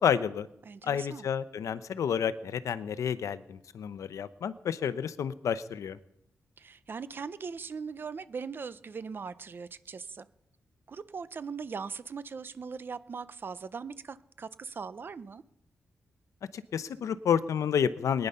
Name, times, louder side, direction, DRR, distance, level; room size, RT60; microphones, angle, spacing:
voice 1, 0.0-0.5 0.8-6.0 16.5-18.3, left 8 dB, 85° left, 0.7 m, -30 dB
voice 2, 0.6-1.3 6.6-10.3 10.9-15.4, right 5 dB, 40° right, 0.6 m, -40 dB
22.0 x 10.0 x 5.6 m
wide cardioid pair, 150°, 5 cm